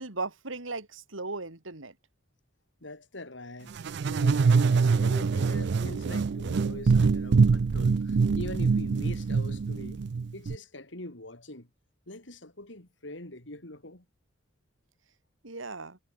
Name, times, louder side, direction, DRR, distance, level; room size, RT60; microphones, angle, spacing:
voice 1, 0.0-1.9 15.4-16.0, right 3 dB, 90° right, 3.2 m, -37 dB
voice 2, 2.8-10.0 10.3-11.7 12.1-14.1, left 1 dB, 65° left, 3.8 m, -43 dB
sound 1, 3.8-10.6, right 4 dB, 60° right, 0.4 m, -24 dB
head